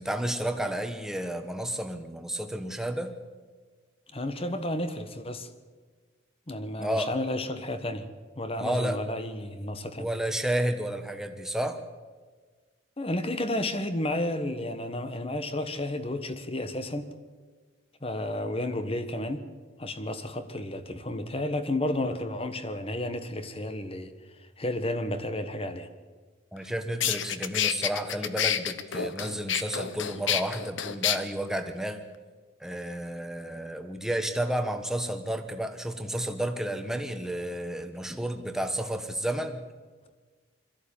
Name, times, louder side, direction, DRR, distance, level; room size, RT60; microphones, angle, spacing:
voice 1, 0.0-3.1 6.8-7.1 8.6-9.0 10.0-11.8 26.5-32.0 32.6-39.6, right 1 dB, 5° right, 6 dB, 1.3 m, -31 dB
voice 2, 4.1-5.5 6.5-8.1 8.4-10.1 13.0-17.1 18.0-19.5 19.8-24.1 24.6-25.9, left 1 dB, 30° left, 10 dB, 1.3 m, -32 dB
sound 1, 26.6-26.7 27.0-31.2, left 9 dB, 70° left, 1.0 m, -28 dB
22.0 x 14.0 x 8.7 m, 1.4 s
head